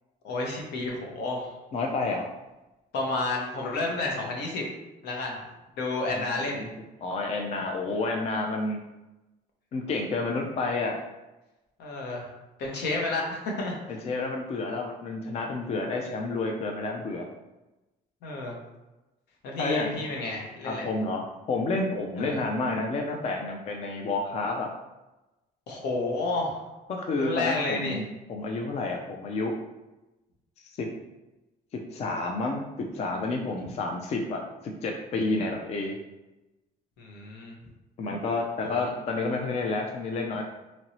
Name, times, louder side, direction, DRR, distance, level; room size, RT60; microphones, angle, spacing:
voice 1, 0.2-1.5 2.9-4.6 5.0-5.4 5.8-6.7 11.8-12.3 12.6-14.0 18.2-18.5 19.4-20.9 22.2-22.4 25.7-26.6 27.2-28.0 33.6-33.7 37.0-37.6 38.6-38.9, left 2 dB, 80° left, 0 dB, 0.8 m, -31 dB
voice 2, 1.7-2.3 6.1-6.7 7.0-8.8 9.7-11.0 13.9-17.3 19.6-20.1 20.6-24.7 26.9-28.0 28.3-29.6 30.8-30.9 31.9-32.6 32.9-34.4 34.8-36.0 38.0-40.4, left 3 dB, 40° left, 1 dB, 0.4 m, -30 dB
3.0 x 2.6 x 2.9 m, 1.0 s
cardioid pair, 110°, 17 cm